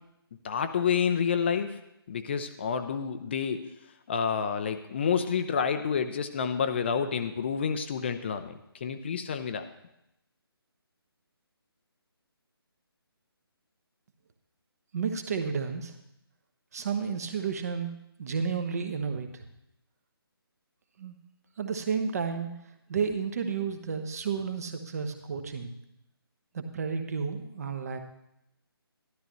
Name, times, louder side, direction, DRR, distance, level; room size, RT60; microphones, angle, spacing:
voice 1, 0.4-1.8 2.1-3.6 4.1-8.5 8.8-9.7, left 6 dB, 25° left, 8 dB, 0.5 m, -29 dB
voice 2, 14.9-15.9 16.7-19.4 21.0-21.2 21.6-22.5 22.9-25.7 26.5-28.0, right 6 dB, 40° right, 7 dB, 1.1 m, -32 dB
12.5 x 12.5 x 3.1 m, 0.81 s
figure-of-eight pair, 150°, 13 cm